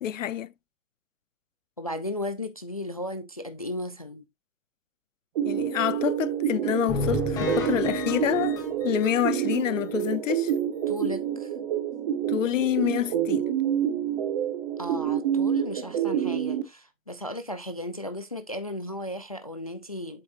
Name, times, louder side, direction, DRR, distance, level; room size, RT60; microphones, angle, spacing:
voice 1, 0.0-0.5 5.4-10.5 12.1-13.4, left 11 dB, 65° left, 0.8 m, -27 dB
voice 2, 1.8-4.2 10.9-11.5 14.8-20.2, left 1 dB, 30° left, 0.3 m, -35 dB
sound 1, 5.4-16.6, right 9 dB, 35° right, 1.1 m, -28 dB
sound 2, 6.9-9.6 10.0-10.1 10.5-10.6 11.0-11.1, left 4 dB, 10° left, 1.1 m, -33 dB
7.8 x 7.0 x 2.5 m
hypercardioid pair, 165°, 42 cm